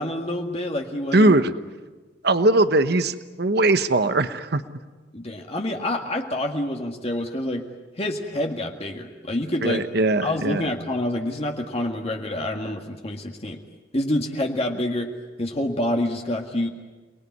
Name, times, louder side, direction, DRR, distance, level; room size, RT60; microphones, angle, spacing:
voice 1, 0.0-1.4 5.1-7.7 8.0-9.9 10.2-13.6 13.9-15.1 15.4-16.7, left 1 dB, 35° left, 2 dB, 1.8 m, -27 dB
voice 2, 1.1-1.5 2.2-4.6 9.6-10.7, right 2 dB, 60° right, 11 dB, 1.1 m, -20 dB
29.0 x 20.5 x 9.6 m, 1.3 s
head